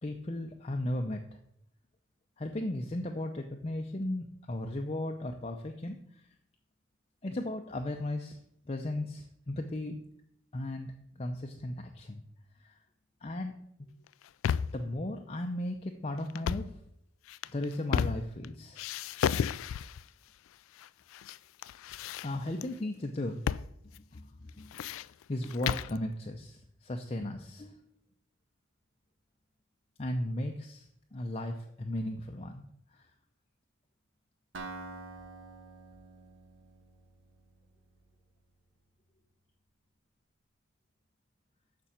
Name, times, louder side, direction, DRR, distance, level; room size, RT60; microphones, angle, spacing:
voice 1, 0.0-1.2 2.4-6.3 7.2-8.4 8.7-10.0 10.5-12.2 12.6-12.8 13.2-13.5 14.7-16.7 17.5-18.9 22.2-23.4 24.0-24.7 25.3-27.8 30.0-32.6 32.9-33.1, left 1 dB, 30° left, 3 dB, 0.6 m, -36 dB
sound 1, 14.1-14.9 16.3-16.8 17.3-18.5 18.8-20.1 20.8-21.4 21.6-22.7 23.5-23.7 23.9-24.0 24.5-26.0, left 8 dB, 85° left, 0.3 m, -33 dB
Acoustic guitar, 34.5-38.4, right 3 dB, 65° right, 1.1 m, -47 dB
7.0 x 6.1 x 7.4 m, 0.73 s
head